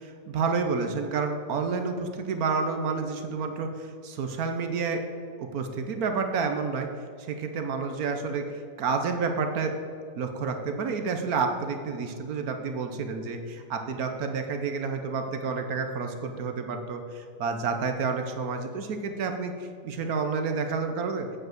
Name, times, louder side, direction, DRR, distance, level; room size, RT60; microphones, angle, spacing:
voice 1, 0.3-5.0 5.4-6.9 7.2-9.8 10.2-21.3, right 5 dB, 65° right, 5 dB, 1.2 m, -29 dB
8.4 x 5.2 x 7.6 m, 2.3 s
omnidirectional pair, 1.9 m